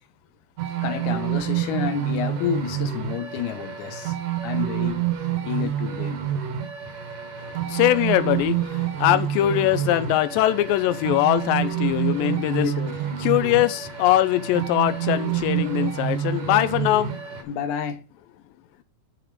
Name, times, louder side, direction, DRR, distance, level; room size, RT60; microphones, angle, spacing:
sound 1, 0.6-17.4, right 10 dB, 70° right, 2.7 m, -28 dB
voice 1, 0.8-4.2 4.4-5.0 5.4-6.2 12.5-13.0 17.5-18.0, left 8 dB, 70° left, 2.3 m, -29 dB
voice 2, 7.4-12.7 13.2-17.2, left 14 dB, 90° left, 2.3 m, -22 dB
8.2 x 4.2 x 6.5 m
omnidirectional pair, 3.9 m